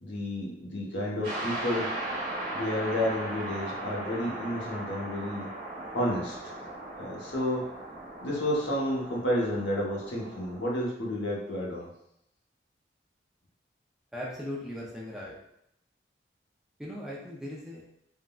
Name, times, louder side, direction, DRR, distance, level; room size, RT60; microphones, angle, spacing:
voice 1, 0.0-1.9 2.5-5.5 5.9-6.5 7.0-7.6 8.2-11.9, left 1 dB, 85° left, -4 dB, 0.9 m, -31 dB
sound 1, 1.2-10.6, right 1 dB, 75° right, 1.0 m, -38 dB
voice 2, 14.1-15.3 16.8-17.8, left 1 dB, 5° right, -5 dB, 0.4 m, -38 dB
3.6 x 2.1 x 2.3 m, 0.77 s
head